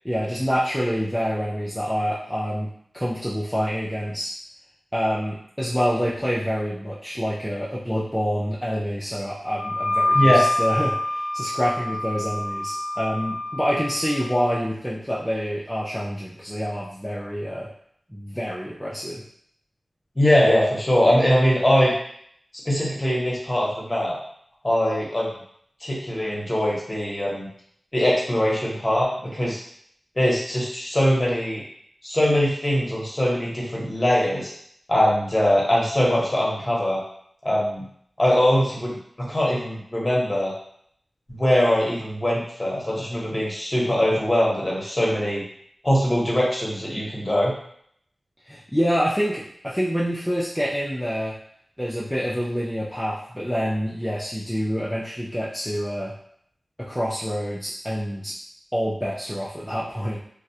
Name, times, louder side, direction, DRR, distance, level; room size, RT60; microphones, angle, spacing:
voice 1, 0.0-2.7 2.9-4.3 4.9-17.7 18.1-19.2 48.4-51.3 51.8-56.1 56.8-58.3 58.7-60.2, equal, 5° left, -7 dB, 0.4 m, -27 dB
Wind instrument woodwind instrument, 9.6-14.5, left 1 dB, 75° left, 0.4 m, -26 dB
voice 2, 20.2-21.9 22.7-24.2 24.6-25.3 25.8-27.5 27.9-29.6 30.2-31.6 32.0-34.5 34.9-37.0 37.4-37.8 38.2-40.5 41.3-45.4 45.8-47.5, equal, 25° left, -5 dB, 0.8 m, -22 dB
2.3 x 2.0 x 2.7 m, 0.66 s
wide cardioid pair, 65°, 0 cm